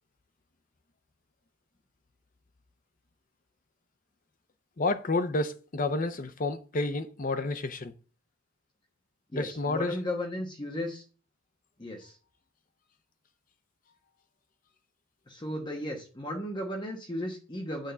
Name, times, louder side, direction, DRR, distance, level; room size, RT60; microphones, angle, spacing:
voice 1, 4.8-7.9 9.3-9.9, left 2 dB, 40° left, 0.6 m, -30 dB
voice 2, 9.3-11.0 11.8-12.2 15.3-17.9, left 1 dB, 20° left, 1.1 m, -35 dB
9.1 x 3.7 x 6.8 m
head